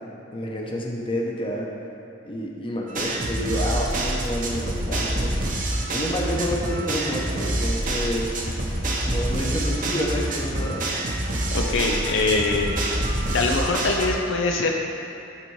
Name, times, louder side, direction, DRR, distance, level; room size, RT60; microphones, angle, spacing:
voice 1, 0.3-1.7 2.2-5.5 5.9-8.8 9.0-10.9, equal, 25° left, -2 dB, 1.0 m, -29 dB
sound 1, 2.9-14.1, right 1 dB, 45° right, 0.9 m, -26 dB
voice 2, 11.5-13.0 13.3-14.7, left 3 dB, 70° left, 1 dB, 0.6 m, -23 dB
11.0 x 4.1 x 4.8 m, 2.9 s
head